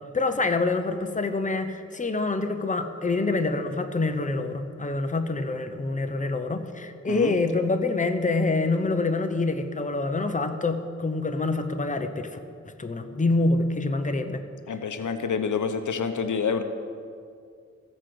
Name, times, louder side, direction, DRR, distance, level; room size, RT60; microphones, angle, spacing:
voice 1, 0.1-12.4 12.6-14.4, left 3 dB, 25° left, 7 dB, 0.8 m, -26 dB
voice 2, 7.0-7.3 14.7-16.6, left 6 dB, 85° left, 8 dB, 0.7 m, -27 dB
14.5 x 5.2 x 7.7 m, 2.3 s
wide cardioid pair, 70°, 30 cm